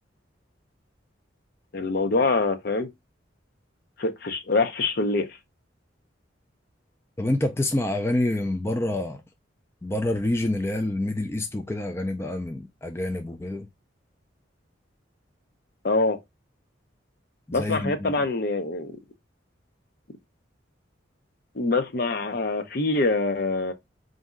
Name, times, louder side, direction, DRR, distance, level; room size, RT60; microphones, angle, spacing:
voice 1, 1.7-2.9 4.0-5.3 15.8-16.2 17.5-19.0 21.6-23.7, left 3 dB, 55° left, 0.7 m, -24 dB
voice 2, 7.2-9.2 9.8-13.7 17.5-18.3, left 1 dB, 15° left, 0.3 m, -27 dB
4.1 x 2.6 x 3.5 m
head